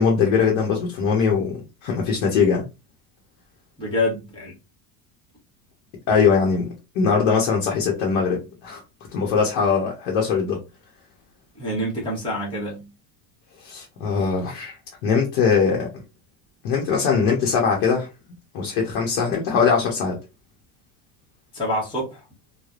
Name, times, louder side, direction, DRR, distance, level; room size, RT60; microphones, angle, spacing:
voice 1, 0.0-2.6 6.1-8.8 9.1-10.6 13.6-14.8 15.0-16.0 16.6-18.1 18.5-20.2, left 5 dB, 60° left, 0.9 m, -21 dB
voice 2, 3.8-4.5 11.6-12.8 21.5-22.2, left 1 dB, 10° left, 0.9 m, -26 dB
3.2 x 2.2 x 2.4 m
cardioid pair, 170°, 42 cm